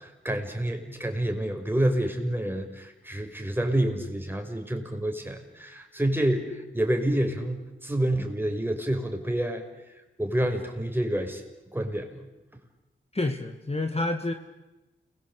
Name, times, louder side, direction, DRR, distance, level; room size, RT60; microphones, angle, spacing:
voice 1, 0.0-9.6 10.2-11.4 11.7-12.2, right 1 dB, 10° right, 4 dB, 5.8 m, -28 dB
voice 2, 13.1-14.3, left 2 dB, 30° left, 6 dB, 2.2 m, -28 dB
29.0 x 22.0 x 8.4 m, 1.0 s
cardioid pair, 55°, 21 cm